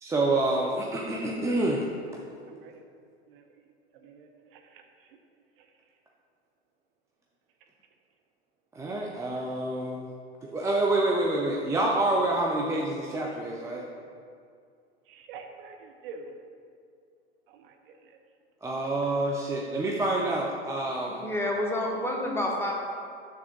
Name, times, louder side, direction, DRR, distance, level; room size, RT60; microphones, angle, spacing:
voice 1, 0.0-1.9 8.7-10.1 10.5-13.8 18.6-21.2, right 2 dB, 10° right, -2 dB, 0.4 m, -27 dB
voice 2, 2.5-2.8 3.3-3.5 3.9-5.2 5.6-5.7 9.2-9.3 15.1-16.3 17.5-18.2 19.1-19.2, right 4 dB, 55° right, 4 dB, 0.8 m, -47 dB
voice 3, 21.2-22.7, left 1 dB, 5° left, -2 dB, 1.0 m, -28 dB
6.1 x 3.6 x 5.9 m, 2.2 s
figure-of-eight pair, 90°, 33 cm